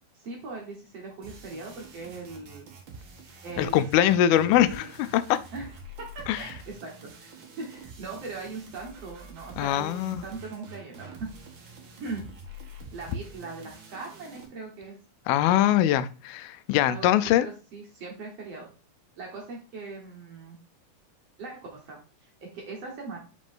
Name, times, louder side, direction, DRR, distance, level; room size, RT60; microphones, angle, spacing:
voice 1, 0.2-2.7 3.4-4.9 5.5-5.7 6.0-11.3 12.0-12.2 12.9-15.0 16.8-18.7 19.2-20.6 21.4-23.2, right 3 dB, 55° right, -1 dB, 1.9 m, -40 dB
sound 1, 1.2-14.5, right 3 dB, 75° right, 1.1 m, -46 dB
voice 2, 3.6-5.4 6.3-6.4 9.6-10.2 15.3-17.5, left 12 dB, 90° left, 14 dB, 2.4 m, -22 dB
5.9 x 5.1 x 3.6 m, 0.34 s
omnidirectional pair, 4.2 m